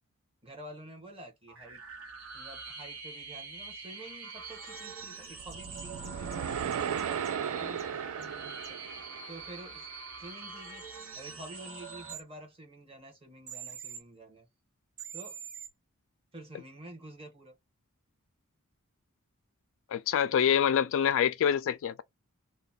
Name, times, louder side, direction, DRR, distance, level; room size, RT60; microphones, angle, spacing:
voice 1, 0.4-1.8 2.3-9.9 10.2-10.8 11.1-14.5 15.1-15.4 16.3-17.5, right 1 dB, 25° right, 1.3 m, -49 dB
sound 1, 1.5-12.1, right 4 dB, 65° right, 1.2 m, -44 dB
sound 2, 4.8-4.9 5.2-6.4 6.7-7.3 7.8-7.9 8.2-8.3 8.6-8.7 12.1-12.2 13.5-14.0 15.0-15.7, right 8 dB, 45° right, 1.1 m, -44 dB
sound 3, 5.3-9.7, right 8 dB, 80° right, 0.4 m, -36 dB
voice 2, 19.9-22.0, left 8 dB, 60° left, 0.3 m, -26 dB
3.0 x 2.2 x 4.0 m
head